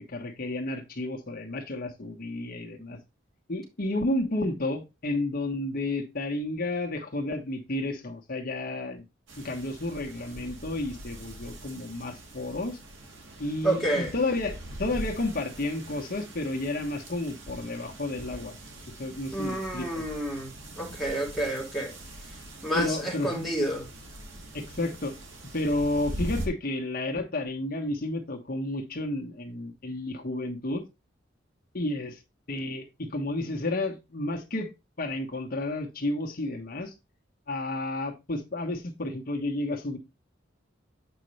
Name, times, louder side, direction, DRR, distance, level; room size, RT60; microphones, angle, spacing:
voice 1, 0.1-3.0 3.5-9.0 9.4-12.8 13.4-18.5 19.0-20.0 22.7-23.4 24.5-25.1 25.5-30.8 31.7-32.2 32.5-34.7 35.0-36.9 37.5-40.0, left 2 dB, 50° left, 1.3 m, -31 dB
sound 1, 9.3-26.5, right 1 dB, 75° right, 2.2 m, -42 dB
voice 2, 13.6-14.1 19.3-21.9 22.6-23.9, right 1 dB, ahead, 3.0 m, -29 dB
8.2 x 5.2 x 3.2 m
head